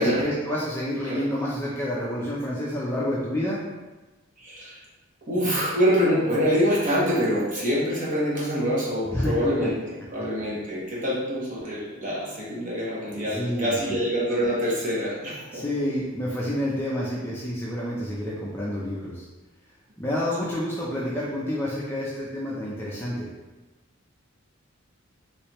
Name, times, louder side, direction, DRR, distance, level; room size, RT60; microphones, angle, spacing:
voice 1, 0.0-3.6 9.1-9.3 13.3-14.0 15.5-19.3 20.0-23.3, left 1 dB, 10° left, -6 dB, 0.4 m, -29 dB
voice 2, 4.4-4.8 5.3-15.6, equal, 35° right, -6 dB, 1.0 m, -25 dB
3.3 x 3.1 x 2.9 m, 1.2 s
head